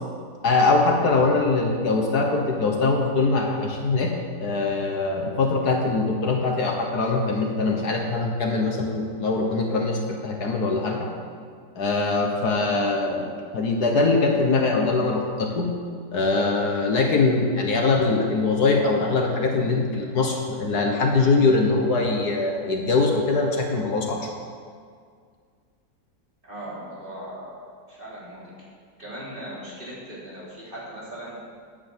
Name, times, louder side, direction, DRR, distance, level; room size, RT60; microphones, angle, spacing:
voice 1, 0.4-4.1 4.4-11.1 11.8-13.3 13.5-15.7 16.1-24.3, left 3 dB, 65° left, 2 dB, 1.7 m, -22 dB
voice 2, 26.4-27.6 27.9-28.5 29.0-31.4, right 1 dB, 30° right, -7 dB, 3.8 m, -38 dB
11.0 x 9.1 x 7.5 m, 2.1 s
omnidirectional pair, 1.9 m